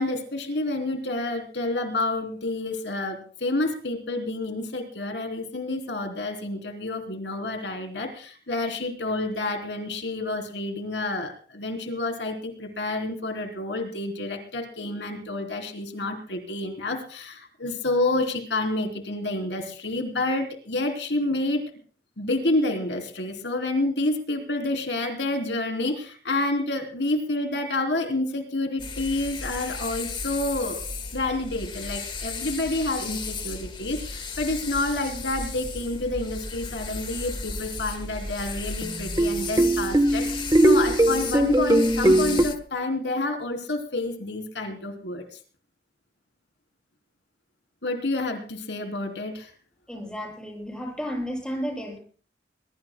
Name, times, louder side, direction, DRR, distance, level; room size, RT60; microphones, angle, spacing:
voice 1, 0.0-21.6 22.2-30.8 31.1-45.2 47.8-49.5, left 2 dB, 85° left, 4 dB, 3.5 m, -29 dB
sound 1, 28.8-42.6, left 4 dB, 30° left, 1.3 m, -35 dB
sound 2, 38.8-42.4, right 1 dB, 20° right, 1.1 m, -20 dB
voice 2, 49.9-52.0, equal, 5° left, -1 dB, 7.5 m, -32 dB
22.0 x 22.0 x 2.2 m, 0.42 s
head